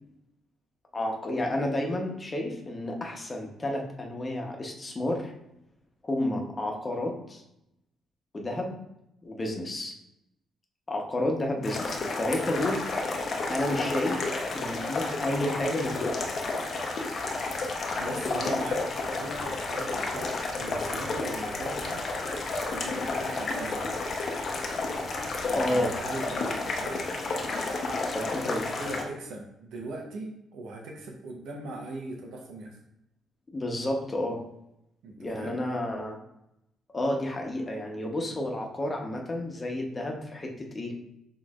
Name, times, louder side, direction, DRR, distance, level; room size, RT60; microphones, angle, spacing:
voice 1, 0.9-5.3 6.0-7.4 8.3-8.8 9.2-9.9 10.9-12.8 13.5-14.2 14.5-16.2 25.5-25.9 28.1-28.6 33.5-34.4 35.2-36.2 36.9-40.9, left 1 dB, 25° left, 1 dB, 1.0 m, -31 dB
sound 1, 11.6-29.0, left 3 dB, 50° left, 0.8 m, -31 dB
voice 2, 18.0-18.9 19.1-22.1 22.7-23.8 25.5-27.1 28.2-32.8 35.0-35.6, right 2 dB, 80° right, 0 dB, 0.9 m, -40 dB
6.2 x 3.1 x 2.4 m, 0.82 s
cardioid pair, 90°, 0 cm